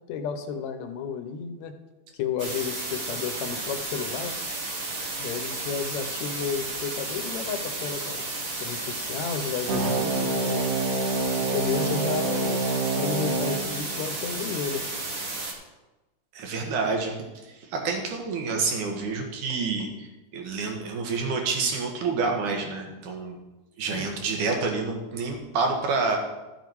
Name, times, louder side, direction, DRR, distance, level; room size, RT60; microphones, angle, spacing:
voice 1, 0.1-1.7 2.2-4.4 5.2-8.2 8.6-10.7 11.5-12.6 12.9-14.9 22.8-23.0 23.8-24.1, left 7 dB, 75° left, 8 dB, 1.9 m, -32 dB
sound 1, 2.4-15.5, right 2 dB, 40° right, 1.4 m, -33 dB
sound 2, 9.7-14.7, right 3 dB, 60° right, 1.9 m, -28 dB
voice 2, 16.3-17.2 17.5-23.4 23.8-26.2, right 4 dB, 80° right, 2 dB, 2.9 m, -28 dB
13.0 x 7.2 x 4.6 m, 1.1 s
omnidirectional pair, 3.6 m